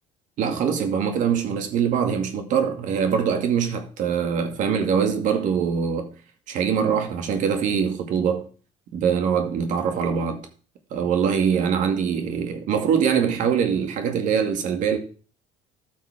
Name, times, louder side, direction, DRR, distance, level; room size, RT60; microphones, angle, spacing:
voice 1, 0.4-6.1 6.5-8.5 8.9-10.4 10.9-15.0, right 7 dB, 60° right, 2.2 m, -23 dB
13.5 x 5.9 x 3.6 m
supercardioid pair, 90°, 15 cm